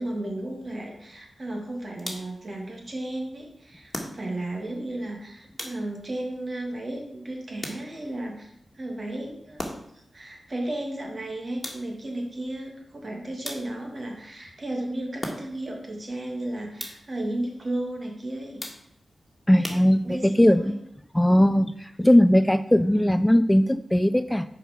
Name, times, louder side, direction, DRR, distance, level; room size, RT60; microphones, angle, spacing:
voice 1, 0.0-8.5 8.7-9.6 9.9-18.7 20.0-20.8 22.9-23.1, right 1 dB, 50° right, 0 dB, 2.1 m, -34 dB
sound 1, 2.0-2.5 3.9-4.6 5.6-6.2 7.6-8.2 9.6-10.1 11.6-12.1 13.4-14.0 15.2-15.8 16.8-17.2 18.6-19.1 19.6-20.4, left 1 dB, 30° left, 1.6 m, -38 dB
voice 2, 19.5-20.7 21.1-24.5, equal, 10° left, 11 dB, 0.3 m, -19 dB
5.3 x 4.6 x 5.9 m, 0.74 s
cardioid pair, 40°, 0 cm